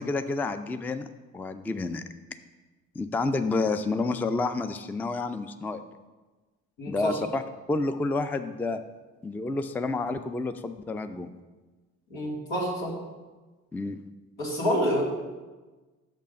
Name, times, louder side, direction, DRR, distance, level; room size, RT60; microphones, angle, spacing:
voice 1, 0.0-2.0 3.0-5.8 6.9-7.4 7.7-8.8 9.2-11.3 13.7-14.0, left 3 dB, 5° left, 10 dB, 0.4 m, -29 dB
voice 2, 6.8-7.1 12.1-12.9 14.4-15.0, equal, 80° left, -5 dB, 2.6 m, -28 dB
6.5 x 5.3 x 5.2 m, 1.2 s
hypercardioid pair, 55°, 38 cm